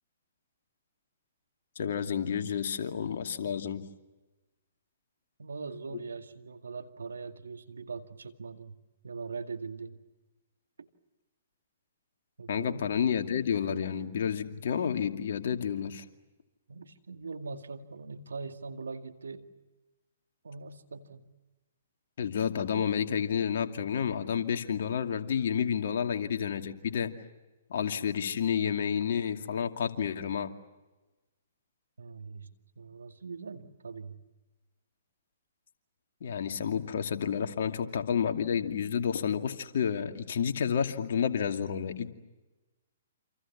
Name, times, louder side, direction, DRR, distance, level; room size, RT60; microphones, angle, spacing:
voice 1, 1.8-3.8 5.9-6.0 12.5-16.0 22.2-27.1 27.7-30.5 36.2-42.1, left 7 dB, 60° left, 5 dB, 2.4 m, -30 dB
voice 2, 5.4-8.8 9.0-10.0 10.8-10.9 12.4-13.2 16.7-19.5 20.4-21.3 32.0-34.3 37.7-37.9, right 4 dB, 80° right, 7 dB, 2.1 m, -42 dB
28.5 x 27.5 x 7.4 m, 1.1 s
hypercardioid pair, 125°, 0 cm